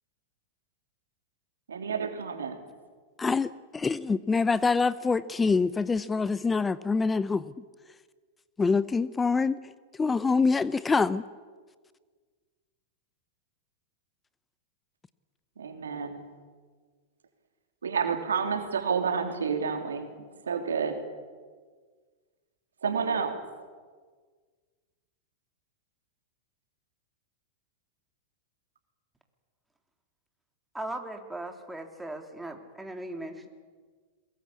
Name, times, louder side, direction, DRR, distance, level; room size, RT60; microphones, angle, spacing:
voice 1, 1.7-2.6 15.6-16.2 17.8-20.1 20.4-21.0 22.8-23.4, right 6 dB, 85° right, 6 dB, 3.2 m, -29 dB
voice 2, 3.2-7.4 8.6-9.6 10.0-11.2, left 4 dB, 15° left, 17 dB, 0.7 m, -25 dB
voice 3, 30.7-33.5, right 1 dB, 5° right, 4 dB, 3.2 m, -38 dB
23.0 x 21.0 x 8.6 m, 1.5 s
hypercardioid pair, 100°, 0 cm